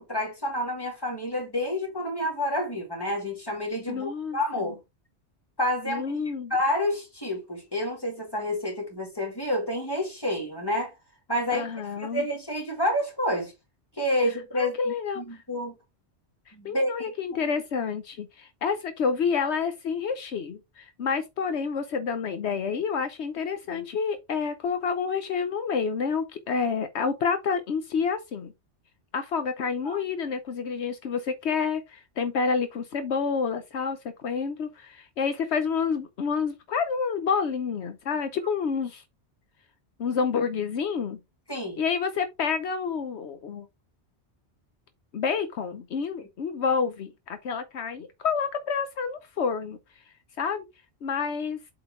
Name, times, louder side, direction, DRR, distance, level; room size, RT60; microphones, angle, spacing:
voice 1, 0.1-4.8 5.6-6.2 6.5-10.9 11.3-11.7 12.0-13.5 14.0-15.7 16.5-17.1 29.8-30.0 41.5-41.8, left 1 dB, 20° left, 2.6 m, -29 dB
voice 2, 3.9-4.7 5.9-6.6 11.5-12.3 14.5-15.4 16.5-28.5 29.1-39.0 40.0-41.2 41.8-43.7 45.1-50.7 51.0-51.6, left 5 dB, 75° left, 1.0 m, -29 dB
7.9 x 3.9 x 3.7 m
omnidirectional pair, 1.1 m